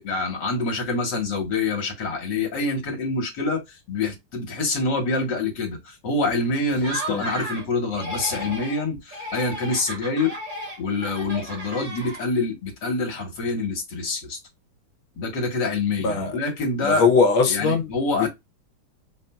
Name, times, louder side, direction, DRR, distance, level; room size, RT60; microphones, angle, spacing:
voice 1, 0.0-10.3 10.8-14.4 15.2-17.0 17.5-18.3, left 3 dB, 60° left, 2.0 m, -26 dB
Laughter, 6.7-7.7 7.9-8.8 9.1-12.4, right 1 dB, 25° right, 1.6 m, -34 dB
voice 2, 16.8-17.9 18.2-18.3, left 5 dB, 80° left, 1.7 m, -20 dB
5.7 x 2.6 x 2.3 m
omnidirectional pair, 2.2 m